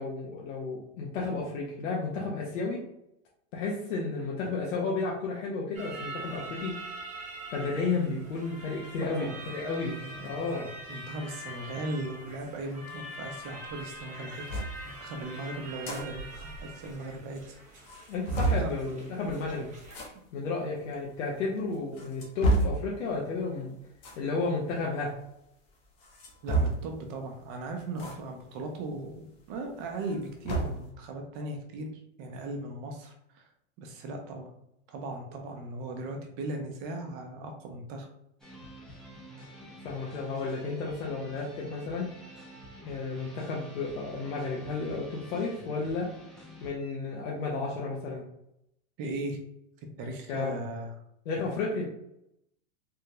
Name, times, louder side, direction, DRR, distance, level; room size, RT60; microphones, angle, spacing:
voice 1, 0.0-2.9 3.5-6.8 7.5-10.7 18.1-19.7 20.3-23.7 24.2-25.2 39.8-42.1 42.9-46.1 46.6-48.2 50.3-50.5 51.3-51.8, left 3 dB, 85° left, -3 dB, 0.9 m, -32 dB
sound 1, 5.7-20.1, right 1 dB, 20° right, 1.1 m, -44 dB
voice 2, 9.8-17.6 18.3-18.8 26.4-31.9 32.2-33.4 33.8-34.5 34.9-38.1 49.0-49.4 50.0-50.9, right 2 dB, 45° right, 3 dB, 0.8 m, -38 dB
sound 2, 14.5-14.7 15.6-16.0 16.4-16.5 16.7-16.8 17.4-17.5 17.8-18.7 19.8-20.1 20.9-21.0 21.7-22.8 24.0-24.2 26.0-27.0 28.0-28.2 28.5-28.6 29.9-30.9, right 2 dB, 40° left, 0.8 m, -29 dB
sound 3, 38.4-46.7, equal, ahead, 0.7 m, -48 dB
3.6 x 2.1 x 2.9 m, 0.79 s
supercardioid pair, 135°, 38 cm